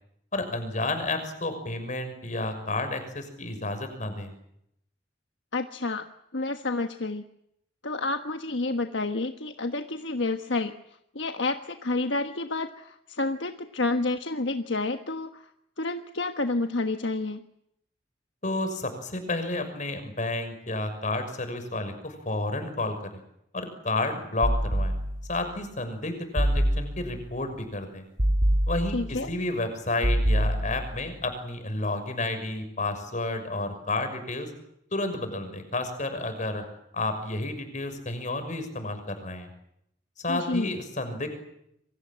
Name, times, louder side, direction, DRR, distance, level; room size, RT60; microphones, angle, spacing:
voice 1, 0.3-4.3 18.4-23.2 23.5-24.9 25.3-28.0 28.7-34.5 34.9-36.6 36.9-39.5 40.2-41.4, left 2 dB, 40° left, 8 dB, 6.3 m, -31 dB
voice 2, 5.5-6.1 6.3-7.2 7.8-10.7 11.1-15.4 15.8-17.4 28.9-29.3 40.3-40.7, left 2 dB, 70° left, 7 dB, 1.4 m, -29 dB
sound 1, 24.4-25.4 26.4-27.3 28.2-29.3 30.0-31.1, right 1 dB, 45° right, 4.0 m, -25 dB
28.0 x 24.5 x 7.6 m, 0.77 s
head